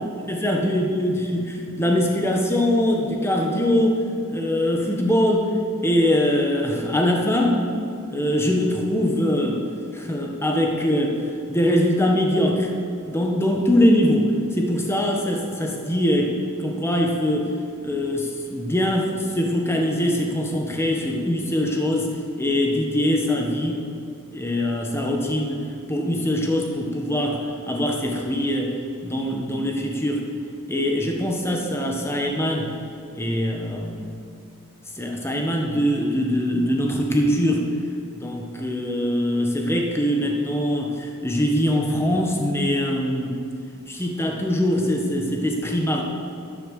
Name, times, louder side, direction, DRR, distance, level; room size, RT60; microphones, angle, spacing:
voice 1, 0.3-4.0 4.3-5.5 5.8-7.6 8.1-9.6 9.9-11.2 11.5-12.7 13.0-17.5 17.8-22.1 22.4-23.8 24.3-28.8 29.0-30.2 30.7-32.7 33.1-34.1 35.0-37.7 38.1-43.4 43.9-46.0, left 1 dB, 10° left, 1 dB, 1.4 m, -22 dB
11.5 x 10.5 x 6.6 m, 2.4 s
head